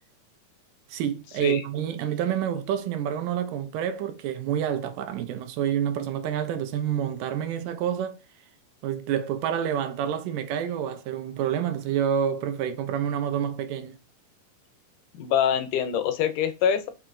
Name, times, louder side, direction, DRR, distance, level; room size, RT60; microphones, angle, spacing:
voice 1, 0.9-8.2 8.8-14.0, right 9 dB, 85° right, 2.1 m, -28 dB
voice 2, 15.2-16.9, left 8 dB, 80° left, 2.0 m, -24 dB
5.5 x 2.8 x 2.5 m
omnidirectional pair, 3.7 m